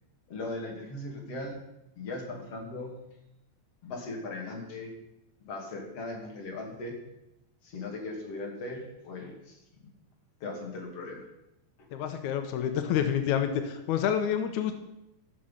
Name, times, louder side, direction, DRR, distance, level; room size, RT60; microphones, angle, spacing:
voice 1, 0.3-1.6 2.0-3.2 3.8-4.9 5.4-6.9 7.6-9.6 10.4-11.2, left 2 dB, 45° left, 0 dB, 3.0 m, -38 dB
voice 2, 11.9-14.7, left 9 dB, 85° left, 7 dB, 1.7 m, -28 dB
15.0 x 6.4 x 5.7 m, 0.89 s
omnidirectional pair, 4.5 m